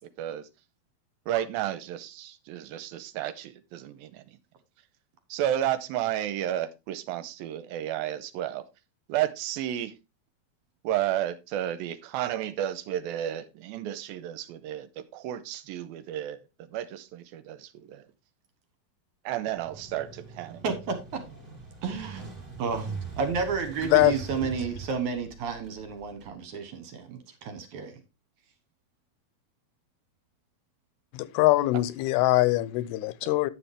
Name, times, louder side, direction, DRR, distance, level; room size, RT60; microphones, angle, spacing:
voice 1, 0.2-0.5 1.3-4.2 5.3-8.6 9.1-9.9 10.8-16.4 16.7-18.1 19.3-20.6 33.2-33.3, right 12 dB, 80° right, 2.4 m, -32 dB
Motorcycle, 19.5-26.3, right 4 dB, 15° right, 2.1 m, -42 dB
voice 2, 20.6-21.0 21.8-22.3 22.6-22.9 23.2-28.0, right 5 dB, 65° right, 2.2 m, -31 dB
voice 3, 31.1-33.5, left 17 dB, 85° left, 2.6 m, -23 dB
10.0 x 7.1 x 3.4 m
omnidirectional pair, 4.4 m